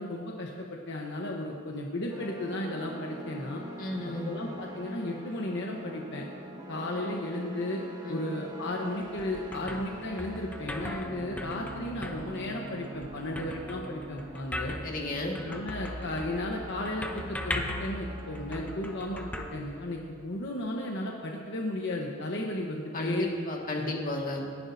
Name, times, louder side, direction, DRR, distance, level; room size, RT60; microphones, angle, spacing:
voice 1, 0.0-3.6 4.2-6.2 6.7-7.8 8.1-14.8 15.5-23.3 23.7-23.9, left 1 dB, 60° left, 0 dB, 1.1 m, -34 dB
sound 1, 2.1-19.0, right 1 dB, 20° right, 1.6 m, -43 dB
voice 2, 3.8-4.4 8.0-8.2 14.8-15.4 22.9-24.4, left 2 dB, 40° left, -1 dB, 1.9 m, -33 dB
sound 2, 8.9-20.3, left 1 dB, 5° left, 0.7 m, -39 dB
27.5 x 11.0 x 2.7 m, 2.2 s
head